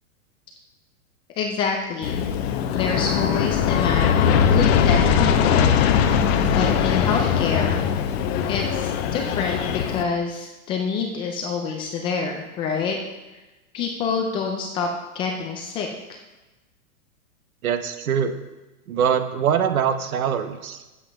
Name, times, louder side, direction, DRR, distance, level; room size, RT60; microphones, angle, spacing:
voice 1, 1.4-2.2 2.7-5.8 6.5-7.8 8.5-13.0 13.7-14.9 15.1-15.9, left 5 dB, 15° left, 1 dB, 0.4 m, -27 dB
Aircraft, 2.0-10.0, left 7 dB, 45° left, 0.9 m, -20 dB
voice 2, 17.6-18.3 18.9-20.8, right 8 dB, 75° right, 9 dB, 1.1 m, -23 dB
8.4 x 7.5 x 5.2 m, 1.1 s
hypercardioid pair, 140°, 42 cm